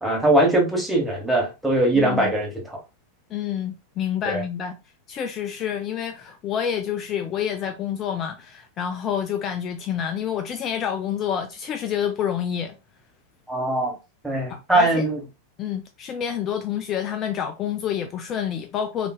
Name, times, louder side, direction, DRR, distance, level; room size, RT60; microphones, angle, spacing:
voice 1, 0.0-2.8 4.2-4.4 13.5-13.9 14.2-15.2, right 1 dB, 5° right, 1.1 m, -21 dB
voice 2, 1.9-2.3 3.3-4.7 5.1-12.8 14.5-15.1 15.6-19.1, left 9 dB, 30° left, 0.3 m, -28 dB
3.6 x 2.5 x 2.3 m
figure-of-eight pair, 90°, 0 cm